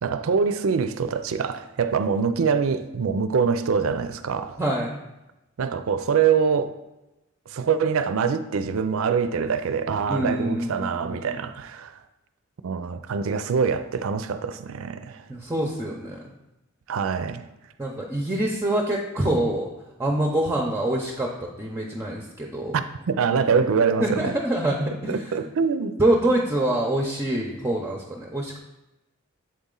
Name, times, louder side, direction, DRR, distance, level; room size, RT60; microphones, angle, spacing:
voice 1, 0.0-4.6 5.6-6.7 7.5-11.9 12.6-15.3 16.9-17.4 22.7-24.4 25.1-25.9, right 6 dB, 75° right, 0.4 m, -24 dB
voice 2, 4.6-4.9 10.1-11.4 15.3-16.2 17.8-19.7 20.0-21.3 21.6-22.7 24.0-25.2 26.0-28.6, right 1 dB, 10° right, 0.6 m, -25 dB
7.5 x 4.1 x 3.8 m
head